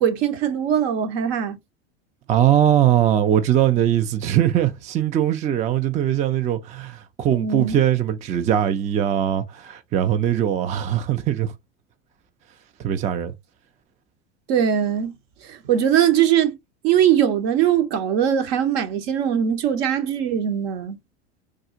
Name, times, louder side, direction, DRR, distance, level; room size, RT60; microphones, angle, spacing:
voice 1, 0.0-1.6 7.3-7.8 14.5-15.1 15.5-16.6 16.8-21.0, right 9 dB, 60° right, 0.9 m, -21 dB
voice 2, 2.3-11.5 12.8-13.3, right 11 dB, 20° right, 0.3 m, -21 dB
3.6 x 2.3 x 2.7 m
hypercardioid pair, 95°, 35 cm